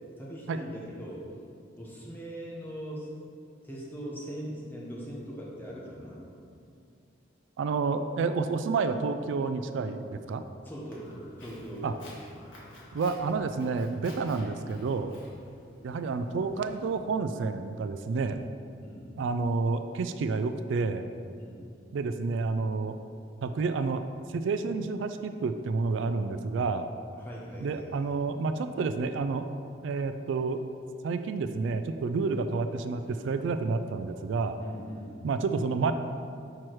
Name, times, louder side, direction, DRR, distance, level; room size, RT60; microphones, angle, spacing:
voice 1, 0.2-1.3 1.8-3.2 3.6-6.3 10.6-12.1 18.2-18.4 18.8-19.1 21.4-21.7 27.2-28.0 34.6-35.2, equal, 10° left, -4 dB, 0.9 m, -41 dB
voice 2, 7.6-10.4 11.8-11.9 12.9-15.2 15.8-18.4 19.2-21.1 21.9-23.0 23.4-24.0 24.3-26.9 27.6-29.5 29.8-30.6 31.0-34.6 35.2-35.9, right 4 dB, 70° right, 9 dB, 0.3 m, -29 dB
Walk footsteps, 10.9-17.0, left 1 dB, 75° left, 1.6 m, -52 dB
6.0 x 4.6 x 4.6 m, 2.4 s
head